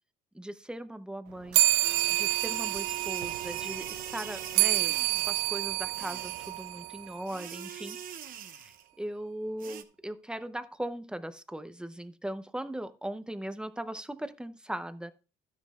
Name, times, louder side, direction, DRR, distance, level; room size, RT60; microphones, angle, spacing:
voice 1, 0.3-1.6 2.1-5.0 5.3-8.7 9.0-15.1, right 1 dB, 5° right, 11 dB, 0.7 m, -39 dB
sound 1, 1.5-7.4, right 19 dB, 90° right, 0.4 m, -29 dB
sound 2, 1.8-5.5 5.9-6.7 7.3-8.9 9.6-9.8, right 9 dB, 55° right, 1.1 m, -42 dB
12.5 x 9.9 x 2.4 m, 0.32 s
cardioid pair, 110°, 17 cm